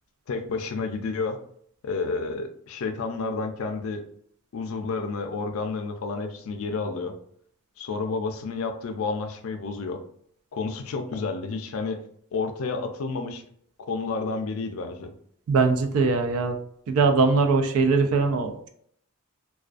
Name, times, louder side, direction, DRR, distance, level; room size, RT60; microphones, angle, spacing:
voice 1, 0.3-1.4 1.8-4.0 4.5-7.2 7.8-10.0 10.5-12.0 12.3-13.4 13.9-15.1, left 4 dB, 65° left, 6 dB, 0.4 m, -30 dB
voice 2, 15.5-16.6 16.9-18.7, right 4 dB, 70° right, 6 dB, 0.4 m, -21 dB
2.4 x 2.3 x 2.3 m, 0.65 s
head